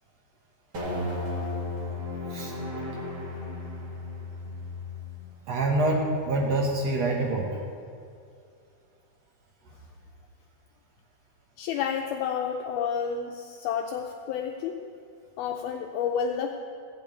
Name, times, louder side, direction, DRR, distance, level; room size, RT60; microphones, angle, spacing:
sound 1, 0.7-7.2, left 2 dB, 55° right, 1.1 m, -36 dB
voice 1, 5.5-7.5, right 2 dB, 85° right, -1 dB, 1.4 m, -26 dB
voice 2, 11.6-14.8 15.4-16.6, left 7 dB, 80° left, 2 dB, 2.2 m, -30 dB
16.0 x 6.1 x 8.9 m, 2.4 s
omnidirectional pair, 4.8 m